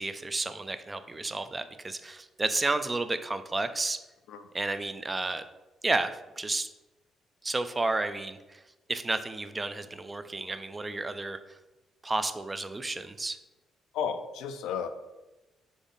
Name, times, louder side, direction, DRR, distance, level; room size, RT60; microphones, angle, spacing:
voice 1, 0.0-4.0 4.5-5.4 5.8-6.7 7.4-8.6 8.9-11.4 12.0-13.4, right 2 dB, 20° right, 10 dB, 0.3 m, -31 dB
voice 2, 13.9-14.9, left 7 dB, 85° left, 9 dB, 0.4 m, -33 dB
3.6 x 3.5 x 3.9 m, 1.0 s
cardioid pair, 90°, 0 cm